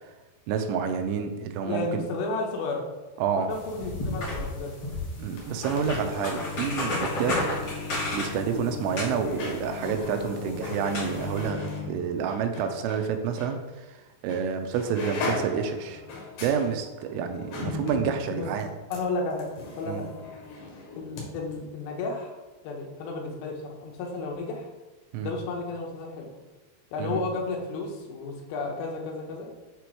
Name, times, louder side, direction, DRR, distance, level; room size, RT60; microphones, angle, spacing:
voice 1, 0.5-2.1 3.2-3.5 5.2-7.4 8.1-16.0 16.4-18.7 19.9-20.0 25.1-25.3 27.0-27.2, right 6 dB, 85° right, 6 dB, 3.2 m, -29 dB
voice 2, 1.7-2.8 3.5-4.8 18.3-18.5 18.9-19.5 19.8-20.1 21.0-22.4 22.6-24.7 25.2-26.3 26.9-29.5, left 3 dB, 85° left, 1 dB, 3.6 m, -32 dB
sound 1, 3.5-11.5, left 1 dB, 35° left, 2.3 m, -34 dB
sound 2, 5.3-13.0 13.4-13.5 14.3-14.5 14.7-21.2 21.5-21.6, left 3 dB, 65° left, 3.6 m, -37 dB
8.3 x 4.2 x 4.6 m, 1.2 s
omnidirectional pair, 5.8 m